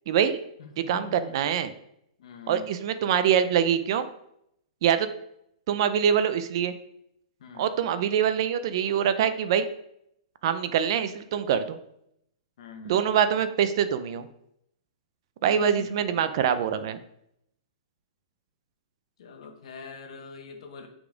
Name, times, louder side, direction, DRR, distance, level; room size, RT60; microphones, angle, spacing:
voice 1, 0.1-0.4 0.9-1.7 2.5-4.1 4.8-5.1 5.7-6.7 7.6-9.6 10.4-11.8 12.9-14.3 15.4-17.0, right 8 dB, 45° right, 12 dB, 0.4 m, -24 dB
voice 2, 0.6-1.3 2.2-2.8 7.4-7.8 12.6-13.2 15.5-16.3 19.2-20.9, left 4 dB, 60° left, 4 dB, 1.2 m, -44 dB
5.9 x 4.0 x 4.9 m, 0.75 s
hypercardioid pair, 165°, 4 cm